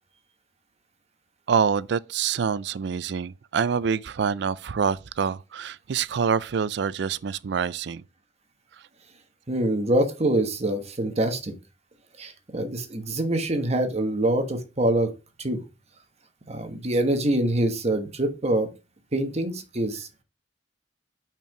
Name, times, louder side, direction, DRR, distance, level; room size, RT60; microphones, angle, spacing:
voice 1, 1.5-8.0, right 6 dB, 65° right, 0.4 m, -26 dB
voice 2, 9.5-11.5 12.2-15.1 15.4-15.6 16.5-18.7 19.1-20.1, right 1 dB, 35° right, 1.2 m, -25 dB
5.8 x 4.5 x 5.9 m
head